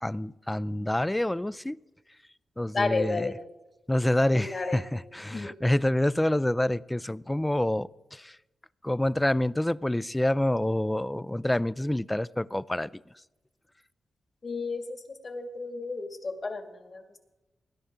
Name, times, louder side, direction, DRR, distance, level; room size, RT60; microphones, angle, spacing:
voice 1, 0.0-1.8 2.6-3.3 3.9-8.4 8.8-12.9, left 1 dB, 15° left, 19 dB, 0.4 m, -27 dB
voice 2, 2.7-3.3 4.3-4.8 5.3-5.5 14.4-17.2, left 3 dB, 50° left, 4 dB, 2.3 m, -32 dB
19.5 x 11.5 x 3.8 m, 1.1 s
cardioid pair, 55°, 0 cm